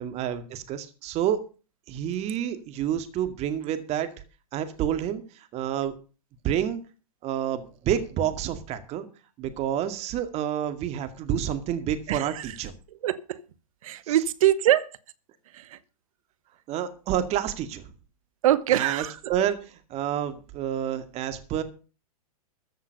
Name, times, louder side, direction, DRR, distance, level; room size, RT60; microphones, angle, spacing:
voice 1, 0.0-1.4 1.9-4.1 4.5-5.2 5.5-5.9 6.4-6.8 7.2-9.1 9.4-12.7 14.1-14.2 16.7-17.9 18.7-21.6, right 10 dB, 35° right, 2.2 m, -29 dB
voice 2, 12.1-12.5 13.0-13.4 13.8-15.0 15.5-15.8 18.4-19.3, right 12 dB, 65° right, 1.2 m, -24 dB
14.5 x 7.4 x 6.6 m
hypercardioid pair, 115°, 19 cm